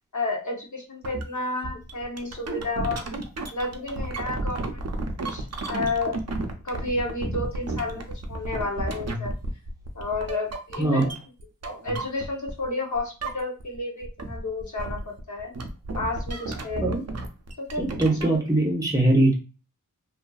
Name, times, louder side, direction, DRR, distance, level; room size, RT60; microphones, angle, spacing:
voice 1, 0.1-3.2 3.5-4.9 5.3-6.2 6.6-8.0 8.3-9.3 9.9-11.1 11.8-15.5 15.9-17.0 17.6-17.9 18.2-18.4, left 2 dB, 60° left, 0 dB, 0.8 m, -31 dB
sound 1, 1.0-1.2 1.6-12.7 12.9-13.8 14.0-18.4, right 2 dB, 50° right, 0.5 m, -33 dB
voice 2, 10.8-11.1 16.8-17.0 17.8-19.3, right 2 dB, 10° right, -2 dB, 0.8 m, -21 dB
2.5 x 2.5 x 2.3 m, 0.33 s
wide cardioid pair, 60°, 34 cm